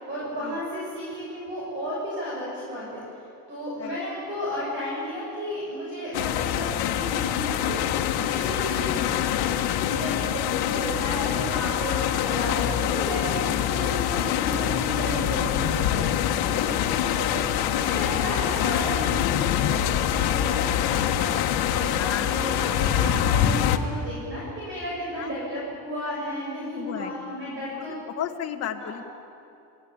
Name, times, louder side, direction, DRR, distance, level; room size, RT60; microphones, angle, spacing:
voice 1, 0.1-3.0 3.5-10.3 10.6-16.2 16.5-16.7 17.0-17.3 17.7-21.3 21.7-28.0 28.7-29.0, equal, 35° right, -6 dB, 6.8 m, -33 dB
sound 1, 6.1-23.8, left 11 dB, 85° left, 1.4 m, -25 dB
voice 2, 20.9-22.4 25.2-25.6 26.7-29.0, left 10 dB, 45° left, 4 dB, 1.5 m, -36 dB
28.0 x 16.5 x 8.7 m, 2.7 s
cardioid pair, 170°, 36 cm